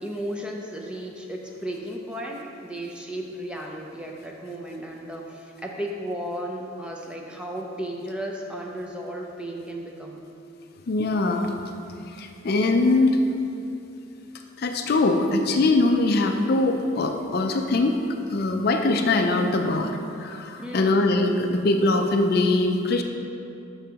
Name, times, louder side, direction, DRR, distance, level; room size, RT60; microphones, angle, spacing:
voice 1, 0.0-10.2 20.6-21.0, right 1 dB, 5° right, 0 dB, 0.5 m, -34 dB
voice 2, 10.9-11.5 12.1-13.2 14.6-18.0 18.3-23.0, left 2 dB, 50° left, 4 dB, 0.4 m, -22 dB
8.9 x 6.0 x 2.9 m, 2.7 s
head